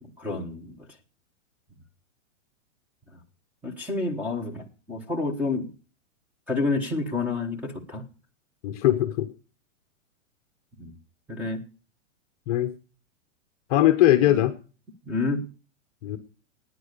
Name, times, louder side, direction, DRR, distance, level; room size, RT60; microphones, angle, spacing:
voice 1, 0.0-0.9 3.6-5.7 6.5-8.0 10.8-10.9 11.3-11.6 14.2-14.4 15.0-15.5, left 3 dB, 5° right, 1.3 m, -29 dB
voice 2, 8.6-9.3 12.5-12.7 13.7-14.5 16.0-16.2, left 13 dB, 30° left, 0.9 m, -21 dB
16.0 x 9.7 x 6.7 m
hypercardioid pair, 165°, 38 cm